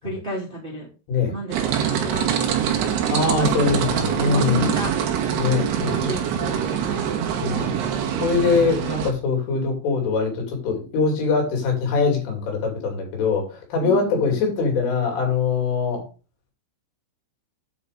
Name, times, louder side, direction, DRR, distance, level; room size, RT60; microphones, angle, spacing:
voice 1, 0.0-0.9 1.3-2.3 3.4-5.4 5.9-7.6 13.8-14.5, equal, 50° right, -2 dB, 0.6 m, -33 dB
sound 1, 1.5-9.1, right 9 dB, 65° right, 3.0 m, -24 dB
voice 2, 3.1-4.8 5.4-6.5 7.4-7.7 8.2-16.0, left 4 dB, 75° left, 1 dB, 5.4 m, -23 dB
9.2 x 5.0 x 5.1 m, 0.34 s
omnidirectional pair, 5.7 m